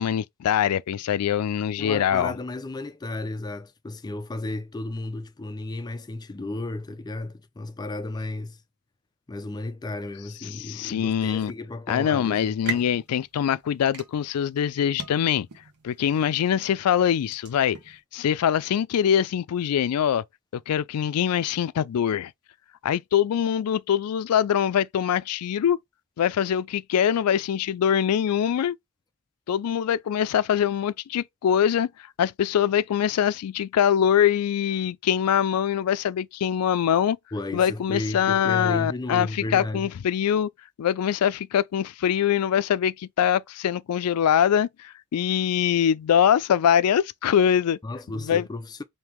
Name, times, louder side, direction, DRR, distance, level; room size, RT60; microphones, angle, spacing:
voice 1, 0.0-2.3 10.5-11.5 11.9-15.5 15.8-20.2 20.5-22.3 22.8-25.8 26.2-28.8 29.5-31.9 32.2-37.2 37.5-40.5 40.8-47.8 48.1-48.5, left 9 dB, 90° left, 0.3 m, -23 dB
voice 2, 1.8-8.6 9.3-12.9 37.3-39.9 47.8-48.8, left 2 dB, 20° left, 0.4 m, -33 dB
sound 1, 12.3-18.0, right 4 dB, 85° right, 1.0 m, -40 dB
3.5 x 2.8 x 4.4 m
head